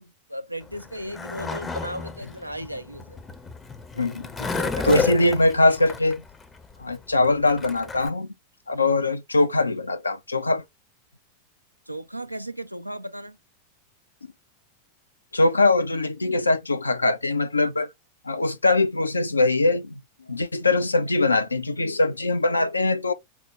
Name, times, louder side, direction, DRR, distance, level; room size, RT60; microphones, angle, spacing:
voice 1, 0.0-3.2 4.4-5.1 8.7-9.0 11.9-13.4, equal, 90° right, 0.4 m, -36 dB
Skateboard, 0.6-8.1, left 4 dB, 15° left, 0.5 m, -32 dB
voice 2, 4.0-4.3 4.8-6.2 6.8-8.3 8.7-10.6 15.3-17.9 18.2-20.0 20.3-23.1, left 2 dB, 80° left, 0.4 m, -22 dB
4.6 x 2.0 x 3.1 m
figure-of-eight pair, 90°, 0 cm